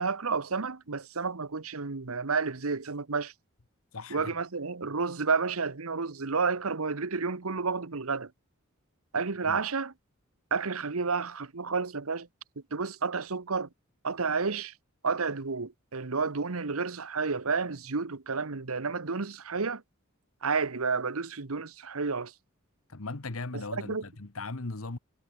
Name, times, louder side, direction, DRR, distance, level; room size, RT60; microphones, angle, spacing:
voice 1, 0.0-3.3 4.1-8.3 9.1-9.9 10.5-12.3 12.7-13.7 14.0-14.7 15.0-19.8 20.4-22.3 23.9-24.0, right 4 dB, 90° right, 1.2 m, -31 dB
voice 2, 3.9-4.4 9.4-9.6 22.9-25.0, left 3 dB, 80° left, 1.3 m, -38 dB
head